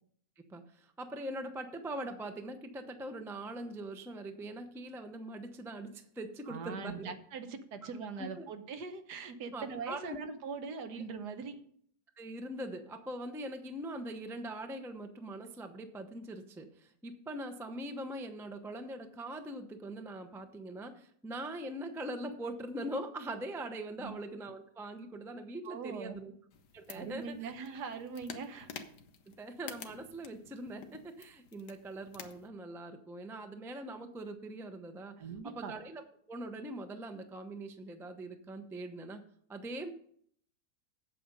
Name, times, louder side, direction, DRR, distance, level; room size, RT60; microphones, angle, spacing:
voice 1, 0.4-7.1 8.2-8.5 9.5-10.2 12.2-26.3 26.7-27.5 29.3-36.0 36.3-39.2 39.5-39.9, right 1 dB, 5° right, 6 dB, 0.4 m, -42 dB
voice 2, 6.5-11.6 24.0-24.1 25.6-26.2 26.9-28.7 35.2-35.7, right 5 dB, 75° right, 8 dB, 1.5 m, -41 dB
sound 1, 26.5-32.5, left 7 dB, 90° left, 1.5 m, -51 dB
8.4 x 7.8 x 5.2 m, 0.62 s
omnidirectional pair, 1.8 m